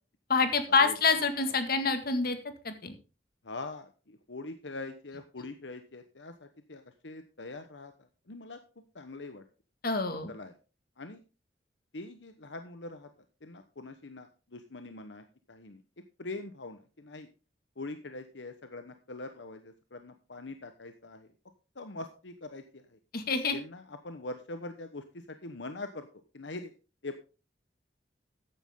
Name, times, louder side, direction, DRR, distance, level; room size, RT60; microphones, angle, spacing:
voice 1, 0.3-2.4 2.6-2.9 9.8-10.3 23.1-23.6, left 4 dB, 55° left, 8 dB, 2.0 m, -27 dB
voice 2, 3.4-7.9 8.3-8.6 8.9-9.4 10.3-10.5 11.0-11.2 11.9-13.1 13.4-15.8 16.2-17.3 17.8-21.3 21.8-23.0 23.5-26.1 26.3-26.7 27.0-27.2, left 2 dB, 80° left, 8 dB, 1.1 m, -43 dB
14.0 x 9.9 x 3.7 m, 0.33 s
head